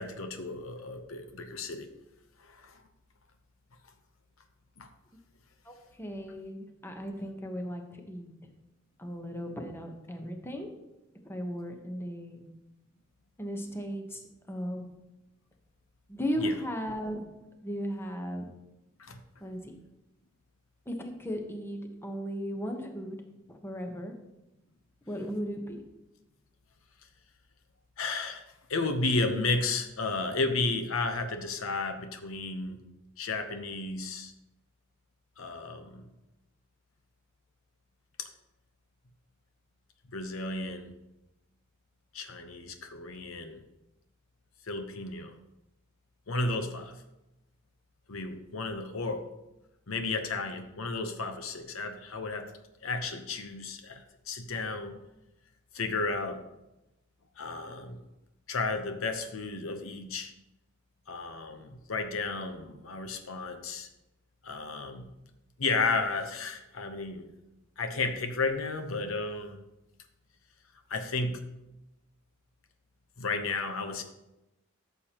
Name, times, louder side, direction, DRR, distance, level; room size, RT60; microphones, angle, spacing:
voice 1, 0.0-1.9 2.4-2.8 4.8-4.9 16.4-16.5 19.0-19.2 28.0-28.4 28.7-32.8 33.2-34.3 35.4-36.1 38.2-38.3 40.1-40.9 42.1-43.6 44.6-45.3 46.3-46.9 48.1-49.3 49.9-52.5 52.8-54.9 55.7-56.4 57.4-58.0 58.5-60.3 61.1-63.9 64.4-65.1 65.6-67.3 67.8-69.6 70.9-71.4 73.2-74.0, left 3 dB, 80° left, 7 dB, 0.9 m, -33 dB
voice 2, 5.6-8.3 9.0-10.7 11.2-12.5 13.4-14.2 14.5-14.8 16.1-17.3 17.6-18.5 19.4-19.8 20.9-23.2 23.5-24.1 25.1-25.8, equal, 10° left, 3 dB, 1.0 m, -36 dB
13.0 x 6.8 x 2.9 m, 0.95 s
head